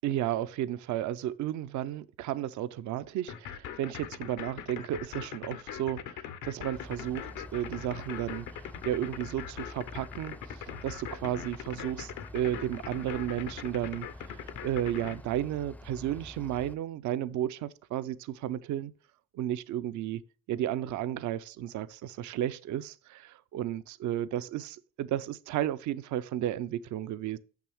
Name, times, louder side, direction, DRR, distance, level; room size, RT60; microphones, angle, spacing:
voice 1, 0.0-18.9 19.3-20.2 20.5-27.4, right 12 dB, 75° right, 0.5 m, -33 dB
sound 1, 3.3-15.1, left 9 dB, 85° left, 0.8 m, -41 dB
Bus / Idling, 6.7-16.7, left 1 dB, 5° left, 0.4 m, -48 dB
6.2 x 5.8 x 3.5 m
cardioid pair, 90°, 30 cm